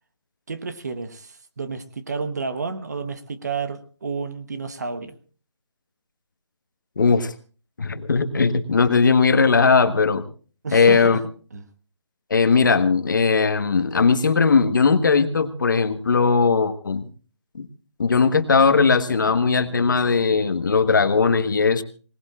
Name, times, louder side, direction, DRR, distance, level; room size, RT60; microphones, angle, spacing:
voice 1, 0.5-5.2 10.6-11.2 11.5-11.7, right 4 dB, 35° right, 1.1 m, -31 dB
voice 2, 7.0-7.3 7.8-10.2 10.7-11.2 12.3-17.1 17.5-17.7 18.0-21.8, left 5 dB, 40° left, 1.5 m, -18 dB
25.5 x 19.5 x 2.4 m
hypercardioid pair, 175°, 15 cm